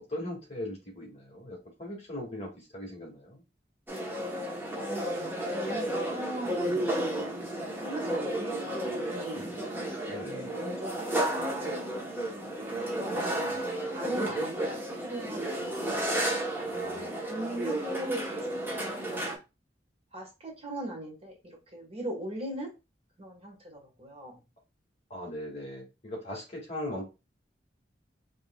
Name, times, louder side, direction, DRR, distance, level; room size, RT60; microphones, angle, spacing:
voice 1, 0.1-3.4 10.1-10.6 13.3-13.6 14.0-14.2 16.7-17.2 25.1-27.1, left 1 dB, 35° left, -1 dB, 1.9 m, -39 dB
sound 1, 3.9-19.4, right 1 dB, 10° right, 1.0 m, -32 dB
voice 2, 4.7-9.4 10.1-13.5 13.9-16.7 17.3-19.3 20.1-22.7 23.2-24.4, right 1 dB, 35° right, -1 dB, 1.5 m, -40 dB
5.1 x 3.2 x 2.3 m, 0.27 s
head